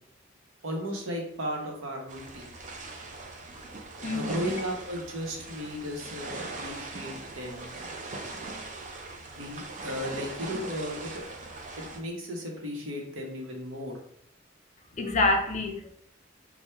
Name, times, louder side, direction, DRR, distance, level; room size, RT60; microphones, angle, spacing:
voice 1, 0.6-2.5 4.1-7.7 9.3-11.2 11.8-13.9, equal, 85° right, 0 dB, 0.8 m, -35 dB
sound 1, 2.1-12.0, right 3 dB, 40° right, 0.4 m, -40 dB
voice 2, 4.0-4.4 15.0-15.9, left 2 dB, 35° left, 3 dB, 0.4 m, -26 dB
4.2 x 2.1 x 2.2 m, 0.67 s
head